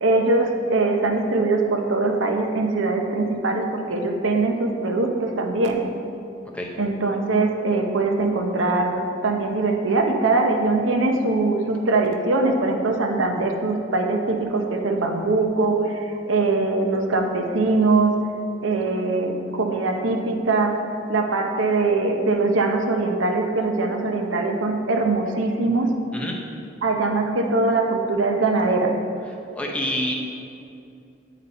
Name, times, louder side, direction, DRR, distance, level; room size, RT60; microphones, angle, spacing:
voice 1, 0.0-5.8 6.8-18.1 18.6-20.8 21.1-25.9 26.8-28.9, right 3 dB, 85° right, 3 dB, 0.7 m, -22 dB
voice 2, 29.3-30.1, left 1 dB, 5° left, -1 dB, 0.5 m, -28 dB
8.3 x 4.0 x 4.1 m, 2.7 s
head